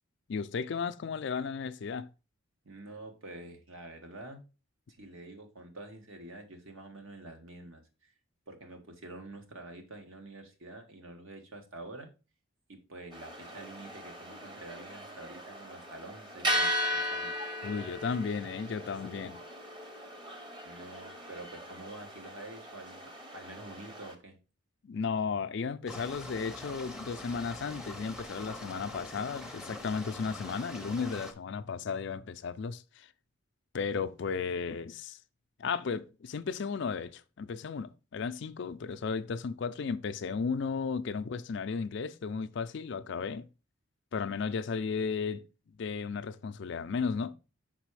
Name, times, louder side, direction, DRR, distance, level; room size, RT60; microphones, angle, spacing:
voice 1, 0.3-2.1 17.6-19.4 24.8-33.1 33.7-35.2 35.6-43.5 44.1-45.4 45.8-47.3, left 5 dB, 55° left, 0.4 m, -34 dB
voice 2, 2.6-4.4 4.9-8.1 8.5-12.1 12.7-17.3 20.6-24.4, right 2 dB, 70° right, 1.4 m, -47 dB
sound 1, 13.1-24.1, equal, 25° right, 0.9 m, -37 dB
sound 2, 25.9-31.3, left 1 dB, 5° right, 0.6 m, -44 dB
5.8 x 4.1 x 4.6 m
head